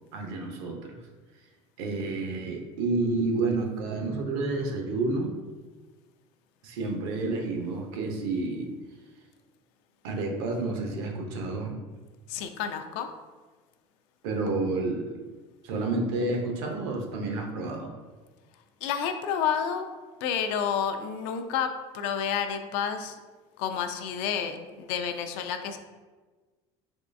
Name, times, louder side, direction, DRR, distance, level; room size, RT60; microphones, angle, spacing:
voice 1, 0.1-1.0 1.8-5.3 6.6-8.7 10.0-11.7 14.2-15.2 15.6-17.9, right 3 dB, 80° right, 2 dB, 0.7 m, -30 dB
voice 2, 12.3-13.1 18.8-19.9 20.2-23.2 23.6-25.8, left 8 dB, 80° left, 7 dB, 0.4 m, -30 dB
3.5 x 3.2 x 2.5 m, 1.3 s
supercardioid pair, 105°, 13 cm